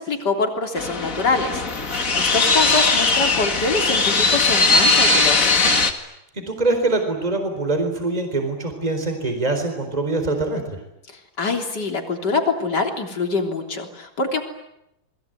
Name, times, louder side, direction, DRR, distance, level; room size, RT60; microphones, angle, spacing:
voice 1, 0.0-5.7 11.4-14.4, left 3 dB, 60° left, 4 dB, 4.0 m, -25 dB
sound 1, 0.8-5.9, left 3 dB, 45° left, 2.5 m, -19 dB
voice 2, 6.3-10.6, right 2 dB, 20° right, 5 dB, 4.3 m, -23 dB
29.5 x 21.5 x 9.2 m, 0.85 s
omnidirectional pair, 2.0 m